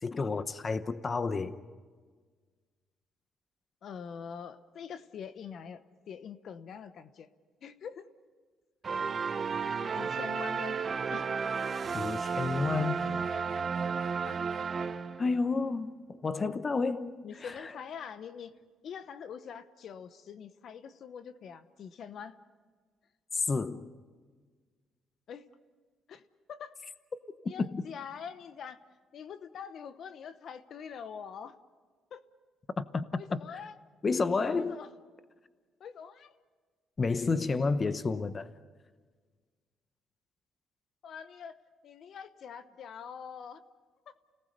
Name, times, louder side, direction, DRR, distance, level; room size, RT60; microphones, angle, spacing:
voice 1, 0.0-1.6 11.9-13.1 15.2-17.7 23.3-23.9 27.6-27.8 32.8-33.0 33.3-33.4 34.0-34.8 37.0-38.5, left 4 dB, 30° left, 0.9 m, -30 dB
voice 2, 3.8-5.8 6.1-7.3 7.6-8.1 9.9-10.8 11.1-11.3 14.2-14.4 17.2-18.5 18.8-22.4 25.3-25.5 26.1-26.2 26.5-26.8 27.4-28.8 29.1-31.6 32.1-32.2 33.2-33.8 34.6-34.9 35.8-36.3 41.0-41.6 41.8-43.6 44.1-44.2, left 7 dB, 60° left, 0.9 m, -44 dB
sound 1, 8.8-15.4, right 5 dB, 40° right, 1.0 m, -33 dB
30.0 x 18.5 x 6.7 m
cardioid pair, 95°, 0 cm